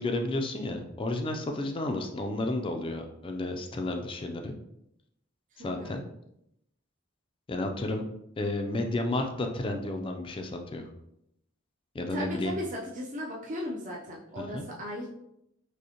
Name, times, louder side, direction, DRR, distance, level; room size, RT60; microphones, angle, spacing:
voice 1, 0.0-4.6 5.6-6.0 7.5-8.0 8.4-10.9 11.9-12.5 14.4-14.7, left 2 dB, 25° left, 4 dB, 0.3 m, -32 dB
voice 2, 5.5-6.0 12.1-15.1, equal, 40° right, -3 dB, 0.5 m, -37 dB
5.1 x 2.1 x 2.8 m, 0.79 s
head